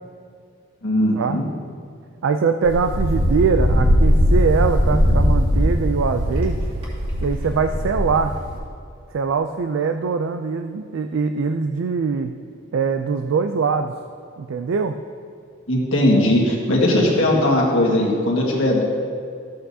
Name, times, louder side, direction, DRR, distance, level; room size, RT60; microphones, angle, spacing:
voice 1, 0.8-1.5 15.7-18.8, left 1 dB, 70° left, -2 dB, 1.7 m, -19 dB
voice 2, 2.2-6.6 7.2-8.4 9.1-12.3 12.7-13.9 14.4-15.0, right 5 dB, 70° right, 8 dB, 0.3 m, -22 dB
Wind, 2.6-8.6, equal, 30° right, 2.2 m, -19 dB
13.5 x 7.8 x 2.8 m, 2.3 s
head